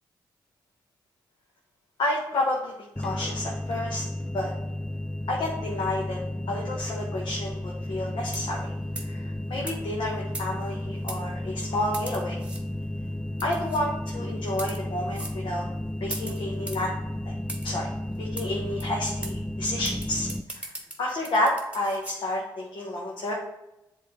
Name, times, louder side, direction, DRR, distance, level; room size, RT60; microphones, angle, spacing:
voice 1, 2.0-4.0 4.3-4.5 5.3-6.2 6.5-8.7 9.0-12.4 13.4-15.7 16.0-16.9 17.6-17.9 18.2-20.7 21.0-23.3, left 1 dB, 70° left, -2 dB, 1.3 m, -30 dB
sound 1, 3.0-20.4, left 1 dB, 10° left, 0.3 m, -33 dB
sound 2, 8.3-8.6 8.9-9.2 9.7-9.8 10.3-10.7 11.1-11.2 11.9-12.6 13.4-13.8 14.5-14.8 15.1-15.4 16.1-16.9 17.5-17.7 18.4-18.5 18.8-18.9 19.2-19.3 19.8-22.2, right 1 dB, 15° right, 1.3 m, -39 dB
7.5 x 3.7 x 3.7 m, 0.91 s
cardioid pair, 60°, 9 cm